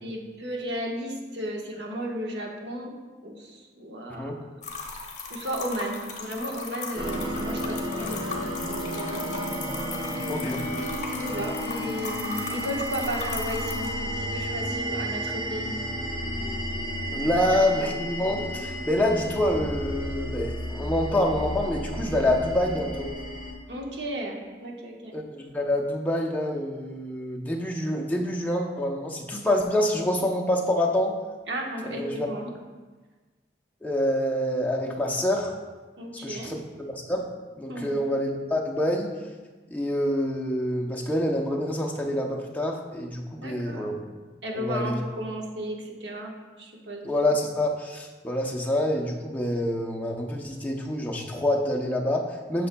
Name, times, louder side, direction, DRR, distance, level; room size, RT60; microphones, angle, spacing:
voice 1, 0.0-2.9 3.2-4.3 5.3-9.5 10.8-15.8 23.7-25.2 31.5-32.5 36.0-36.5 37.7-37.9 43.4-43.9 44.4-46.3 46.6-47.1, equal, 80° right, 0 dB, 1.2 m, -34 dB
sound 1, 4.6-13.9, left 4 dB, 40° left, 1.0 m, -37 dB
sound 2, 6.9-23.5, equal, 30° right, 1.2 m, -32 dB
voice 2, 10.3-10.6 17.1-23.1 25.1-31.2 31.8-32.3 33.8-35.5 36.2-37.3 37.6-39.1 39.7-44.0 44.5-45.0 47.0-52.7, left 1 dB, 10° left, -1 dB, 0.6 m, -26 dB
8.2 x 6.7 x 2.2 m, 1.3 s
head